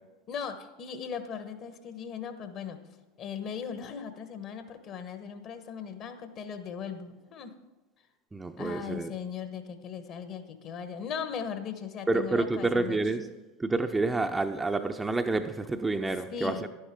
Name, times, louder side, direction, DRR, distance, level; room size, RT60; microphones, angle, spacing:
voice 1, 0.3-2.8 3.2-7.5 8.6-13.0 16.3-16.6, left 7 dB, 45° left, 1.2 m, -38 dB
voice 2, 8.3-9.1 12.1-13.3 13.6-16.7, right 3 dB, 15° right, 0.6 m, -28 dB
11.0 x 10.5 x 3.7 m
figure-of-eight pair, 80°, 0 cm